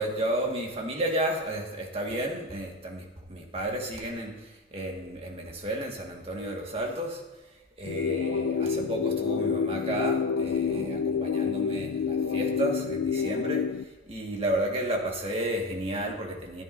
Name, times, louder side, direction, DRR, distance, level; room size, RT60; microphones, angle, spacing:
voice 1, 0.0-7.2 7.8-13.6 14.0-16.6, right 1 dB, 30° right, 0 dB, 1.7 m, -32 dB
sound 1, 7.8-13.8, left 6 dB, 70° left, 0.3 m, -28 dB
14.0 x 10.5 x 2.6 m, 1.1 s
head